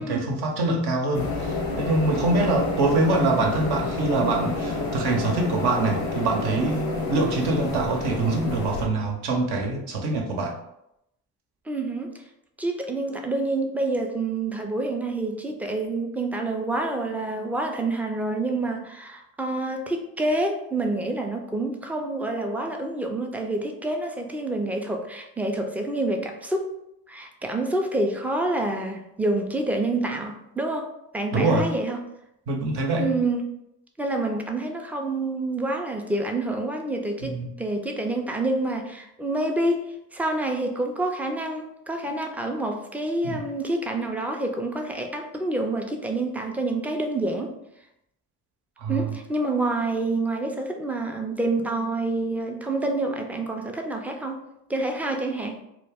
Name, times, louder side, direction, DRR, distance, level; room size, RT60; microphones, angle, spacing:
voice 1, 0.0-10.5 31.3-31.7 32.5-33.1 37.2-37.5 43.2-43.4 48.8-49.1, right 2 dB, 65° right, 1 dB, 0.8 m, -24 dB
sound 1, 1.1-8.9, left 3 dB, 90° left, 0.8 m, -29 dB
voice 2, 11.7-12.1 12.6-26.7 27.1-32.0 33.0-33.4 34.0-39.9 40.1-47.5 48.9-54.4 54.7-55.6, right 2 dB, 5° right, 3 dB, 0.3 m, -27 dB
2.3 x 2.1 x 3.3 m, 0.82 s
hypercardioid pair, 55°, 44 cm